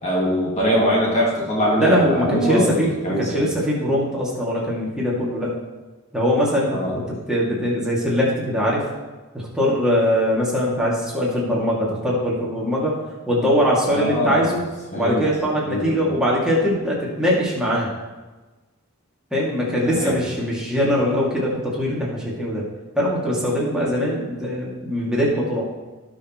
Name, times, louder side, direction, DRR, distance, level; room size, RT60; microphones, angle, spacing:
voice 1, 0.0-2.8 3.0-3.4 6.7-6.9 13.9-14.5 14.9-15.3 15.6-15.9 19.9-20.2, equal, 35° left, -4 dB, 2.0 m, -22 dB
voice 2, 1.8-5.5 6.1-7.0 7.3-8.8 9.3-12.9 13.3-14.6 14.9-17.9 19.3-22.6 23.0-25.7, equal, 5° right, -6 dB, 2.5 m, -21 dB
18.0 x 6.4 x 3.2 m, 1.2 s
head